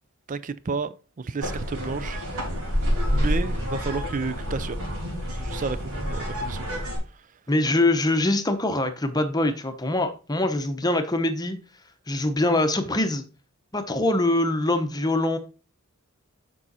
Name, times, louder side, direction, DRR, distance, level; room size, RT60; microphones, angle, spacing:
voice 1, 0.3-2.2 3.1-4.8 5.3-6.8 7.1-7.3, right 4 dB, 35° right, 0.4 m, -31 dB
sound 1, 1.4-7.0, equal, 80° right, 3.2 m, -28 dB
voice 2, 7.5-11.6 12.1-13.2 13.7-15.4, left 2 dB, 15° left, 0.8 m, -23 dB
7.5 x 5.5 x 4.1 m
head